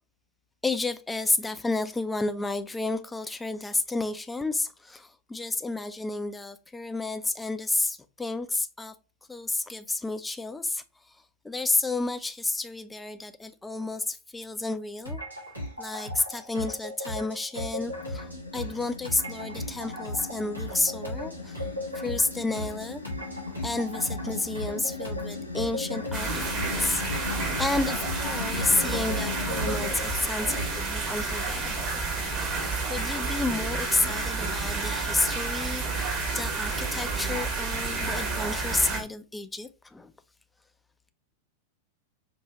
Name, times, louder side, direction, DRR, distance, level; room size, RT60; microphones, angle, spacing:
voice 1, 0.6-8.9 9.3-10.8 11.4-15.2 15.8-21.6 21.9-23.0 23.6-32.0 32.4-40.1, left 2 dB, 10° left, 0.4 m, -31 dB
sound 1, 15.1-30.9, left 1 dB, 85° right, 1.4 m, -37 dB
sound 2, 17.7-29.9, left 3 dB, 85° left, 0.7 m, -38 dB
sound 3, 26.1-39.0, right 3 dB, 30° right, 1.3 m, -30 dB
5.5 x 2.6 x 3.0 m
figure-of-eight pair, 90°, 0 cm